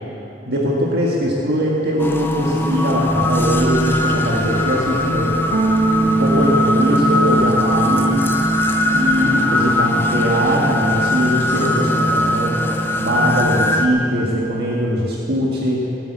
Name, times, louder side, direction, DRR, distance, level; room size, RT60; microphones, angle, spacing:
voice 1, 0.4-5.3 6.0-8.3 8.9-12.6 13.0-15.9, equal, 65° right, -4 dB, 1.7 m, -21 dB
sound 1, 2.0-13.9, left 1 dB, 15° left, 0.7 m, -20 dB
sound 2, 2.5-11.6, equal, 15° right, 4.2 m, -37 dB
sound 3, 5.5-15.2, right 2 dB, 85° right, 1.0 m, -24 dB
17.5 x 8.2 x 8.0 m, 2.8 s
head